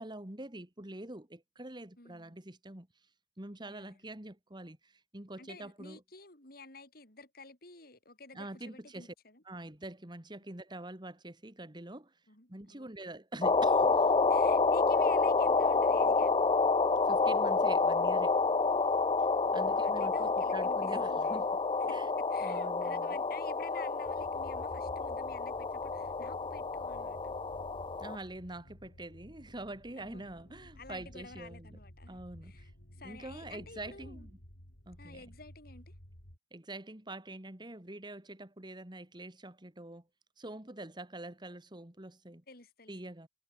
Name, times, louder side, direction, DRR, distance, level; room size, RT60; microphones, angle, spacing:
voice 1, 0.0-2.9 3.4-6.0 8.3-9.1 9.5-12.1 12.5-14.1 17.0-18.3 19.2-21.5 21.9-22.1 22.4-23.1 28.0-31.8 32.1-32.7 33.0-34.4 34.9-35.3 36.5-40.0 40.4-42.4 42.9-43.3, right 1 dB, 25° right, 1.9 m, -45 dB
voice 2, 2.0-2.4 3.7-4.0 5.4-9.4 12.3-12.9 14.3-16.5 19.4-21.5 21.8-27.4 30.0-30.3 30.8-34.3 35.0-35.9 42.5-43.1, left 3 dB, 55° left, 7.0 m, -52 dB
sound 1, 13.4-28.2, left 4 dB, 25° left, 0.5 m, -29 dB
sound 2, 24.0-36.4, equal, 85° left, 7.1 m, -53 dB
head